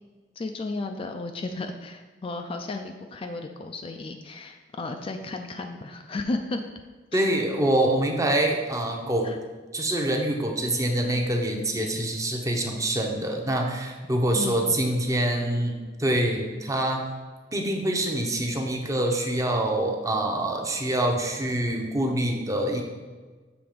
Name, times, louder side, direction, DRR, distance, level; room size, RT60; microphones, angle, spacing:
voice 1, 0.4-6.6 7.1-7.2 9.2-9.4 11.3-11.4 14.3-14.8, left 2 dB, 30° left, 5 dB, 0.3 m, -34 dB
voice 2, 7.1-9.3 9.7-17.1 17.5-22.8, right 1 dB, 20° right, 1 dB, 0.7 m, -25 dB
7.0 x 3.4 x 5.0 m, 1.4 s
head